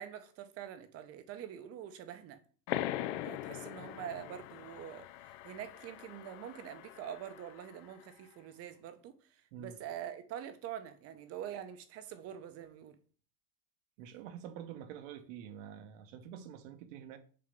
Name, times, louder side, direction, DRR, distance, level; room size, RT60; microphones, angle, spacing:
voice 1, 0.0-2.4 3.2-13.0, right 10 dB, 35° right, 0.8 m, -45 dB
sound 1, 2.7-7.9, left 13 dB, 50° left, 0.5 m, -41 dB
voice 2, 14.0-17.2, right 9 dB, 60° right, 1.1 m, -47 dB
6.8 x 2.9 x 5.2 m
supercardioid pair, 140°, 44 cm